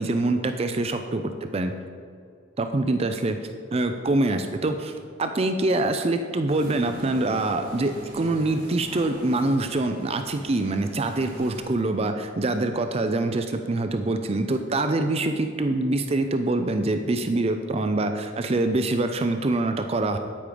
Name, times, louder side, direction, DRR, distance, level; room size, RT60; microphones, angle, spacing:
voice 1, 0.0-1.7 2.6-3.4 3.7-4.9 5.2-20.2, right 2 dB, 30° right, 7 dB, 0.5 m, -25 dB
sound 1, 6.5-11.6, right 1 dB, 50° right, 2.1 m, -43 dB
9.1 x 8.5 x 5.1 m, 2.4 s
head